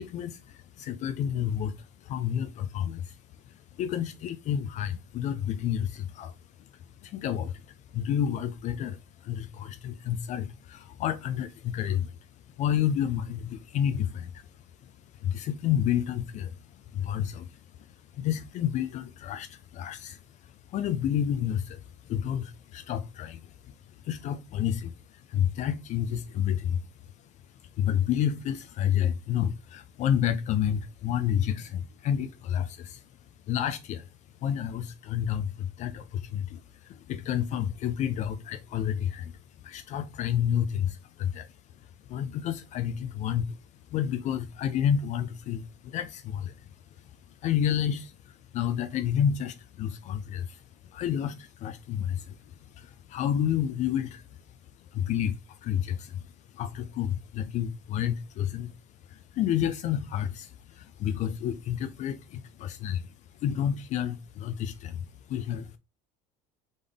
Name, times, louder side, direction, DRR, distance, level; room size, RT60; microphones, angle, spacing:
voice 1, 0.0-3.2 3.4-12.3 12.6-33.1 33.5-34.1 34.4-41.5 41.8-46.7 47.0-47.2 47.4-54.4 54.9-58.7 59.0-65.8, left 9 dB, 45° left, 0.4 m, -30 dB
3.9 x 3.5 x 3.4 m
cardioid pair, 135°, 16 cm